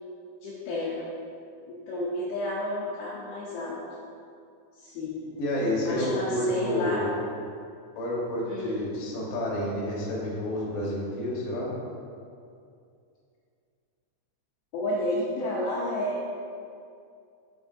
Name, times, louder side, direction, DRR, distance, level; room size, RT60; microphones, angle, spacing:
voice 1, 0.4-1.1 1.7-3.8 4.8-5.2 5.8-7.1 8.5-8.8 14.7-16.2, left 1 dB, 80° left, -6 dB, 2.2 m, -31 dB
voice 2, 5.4-7.1 8.0-11.7, left 1 dB, 65° left, -4 dB, 2.5 m, -29 dB
6.9 x 6.6 x 2.7 m, 2.4 s
omnidirectional pair, 5.2 m